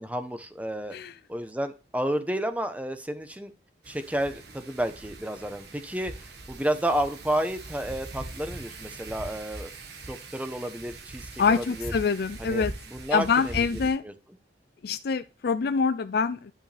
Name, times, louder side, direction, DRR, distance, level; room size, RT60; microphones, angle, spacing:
voice 1, 0.0-1.0 1.3-3.5 3.9-6.1 6.5-9.7 10.1-11.9 12.4-13.6 14.0-14.1, right 1 dB, 10° right, 9 dB, 0.9 m, -31 dB
Wind, 3.8-13.9, right 2 dB, 65° right, 1.7 m, -41 dB
voice 2, 11.4-12.7 13.1-14.0 14.8-16.5, left 5 dB, 60° left, 12 dB, 0.4 m, -25 dB
11.5 x 5.6 x 3.4 m, 0.33 s
head